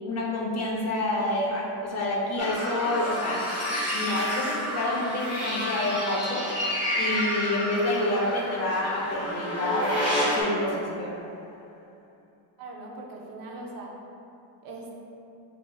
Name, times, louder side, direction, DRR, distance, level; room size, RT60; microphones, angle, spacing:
voice 1, 0.0-6.4 7.0-11.1, left 1 dB, 35° left, -3 dB, 0.6 m, -28 dB
sound 1, 2.4-10.4, left 1 dB, 5° right, 1.4 m, -30 dB
sound 2, 5.8-12.0, left 1 dB, 60° left, 1.0 m, -46 dB
voice 2, 12.6-14.0 14.6-14.9, right 2 dB, 50° right, -1 dB, 0.6 m, -40 dB
6.9 x 2.9 x 2.3 m, 2.8 s
cardioid pair, 155°, 46 cm